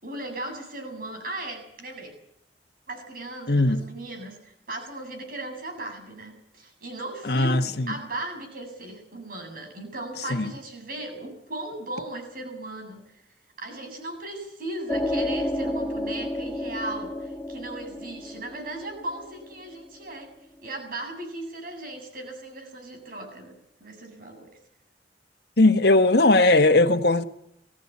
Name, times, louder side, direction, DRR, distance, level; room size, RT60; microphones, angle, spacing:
voice 1, 0.0-2.1 2.9-13.0 13.6-20.3 20.6-24.5, right 2 dB, 55° right, 7.7 m, -37 dB
voice 2, 3.5-3.8 7.2-7.9 10.3-10.5 25.6-27.2, left 2 dB, 65° left, 1.6 m, -19 dB
sound 1, 14.9-20.1, left 1 dB, 5° left, 1.5 m, -31 dB
21.5 x 17.0 x 8.7 m
head